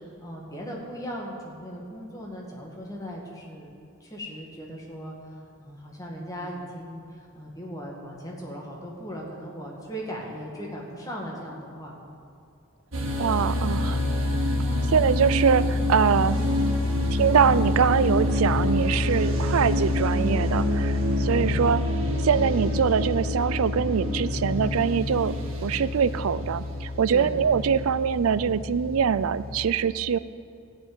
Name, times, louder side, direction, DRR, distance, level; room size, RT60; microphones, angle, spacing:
voice 1, 0.2-3.7 4.0-12.0 27.1-27.5, equal, 15° left, -2 dB, 2.0 m, -38 dB
sound 1, 12.9-29.6, left 1 dB, 70° right, 1.8 m, -26 dB
voice 2, 13.2-14.0 14.9-16.4 17.1-21.8 22.2-25.3 25.6-30.2, right 7 dB, 90° right, 16 dB, 0.4 m, -23 dB
14.0 x 6.1 x 9.5 m, 2.6 s
head